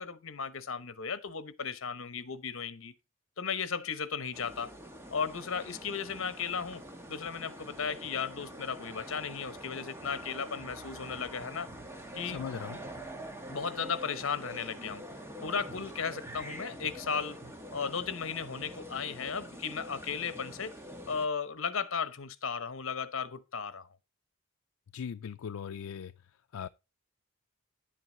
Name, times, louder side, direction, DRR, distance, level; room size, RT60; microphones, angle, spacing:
voice 1, 0.0-2.9 3.4-4.7 5.1-6.8 7.1-11.7 12.1-12.4 13.5-15.0 15.4-17.4 17.7-20.7 21.1-23.9, left 6 dB, 70° left, 0.9 m, -35 dB
sound 1, 4.3-21.3, equal, 10° right, 1.3 m, -45 dB
voice 2, 12.3-12.8 24.9-26.1 26.5-26.7, left 7 dB, 90° left, 0.4 m, -39 dB
10.5 x 7.7 x 3.9 m
head